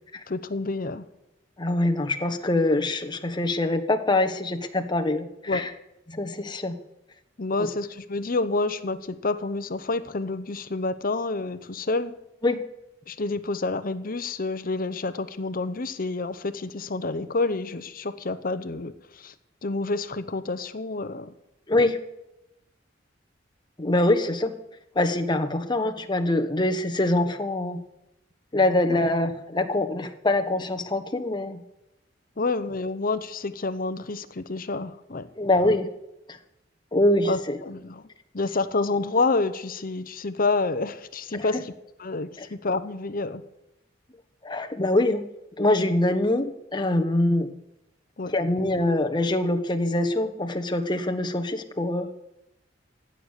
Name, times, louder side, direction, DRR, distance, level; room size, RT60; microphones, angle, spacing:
voice 1, 0.3-1.0 5.5-5.7 7.4-12.1 13.1-19.3 19.6-21.3 28.9-29.0 32.4-35.3 37.3-38.0 38.3-41.7 42.0-43.4 48.2-48.3, left 3 dB, 50° left, 12 dB, 0.8 m, -28 dB
voice 2, 1.6-5.7 6.1-6.8 7.6-7.7 12.4-12.6 21.7-22.0 23.8-24.5 24.9-27.8 28.5-31.6 35.4-35.9 36.9-37.6 41.3-41.6 42.4-42.5 44.4-45.2 45.6-47.5 48.3-52.1, left 1 dB, 25° left, 6 dB, 1.1 m, -24 dB
16.0 x 6.7 x 9.8 m, 0.90 s
head